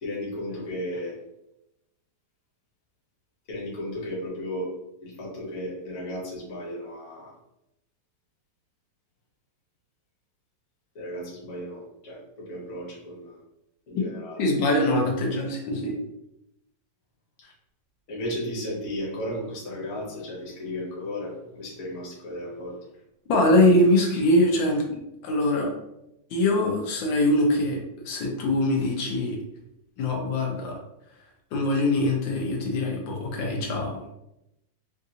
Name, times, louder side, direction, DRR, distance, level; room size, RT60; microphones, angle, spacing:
voice 1, 0.0-1.2 3.5-4.7 5.0-7.3 10.9-13.4 13.9-14.4 18.1-22.8, left 1 dB, 45° left, -4 dB, 1.1 m, -34 dB
voice 2, 14.4-15.9 23.3-25.7 26.3-27.8 28.0-29.4 30.0-30.7 31.5-34.0, left 1 dB, 85° left, 0 dB, 1.5 m, -23 dB
3.7 x 2.5 x 2.7 m, 0.86 s
omnidirectional pair, 2.0 m